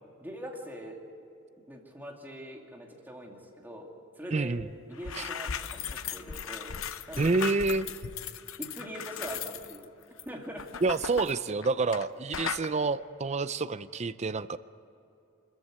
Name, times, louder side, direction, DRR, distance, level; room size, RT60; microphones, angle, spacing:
voice 1, 0.2-1.0 1.7-4.6 4.9-7.3 8.6-9.9 10.2-10.7, right 1 dB, 10° right, 0 dB, 2.5 m, -43 dB
voice 2, 4.3-4.7 5.2-5.3 7.2-7.9 10.8-14.6, right 3 dB, 35° right, 15 dB, 0.5 m, -28 dB
sound 1, 4.6-4.7 4.9-12.1 12.3-12.7, left 7 dB, 80° left, 0.8 m, -37 dB
25.0 x 14.0 x 8.2 m, 2.8 s
head